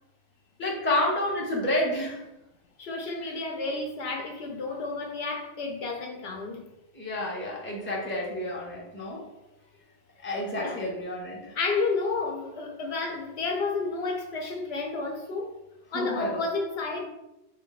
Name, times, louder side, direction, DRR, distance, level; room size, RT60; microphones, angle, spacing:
voice 1, 0.6-2.2 3.2-3.3 6.9-9.3 10.2-11.5 15.9-16.4, left 1 dB, 15° left, 0.5 m, -29 dB
voice 2, 2.8-6.6 10.5-10.8 11.6-15.6 15.9-17.1, left 3 dB, 70° left, 0.8 m, -31 dB
3.5 x 2.2 x 3.9 m
omnidirectional pair, 1.1 m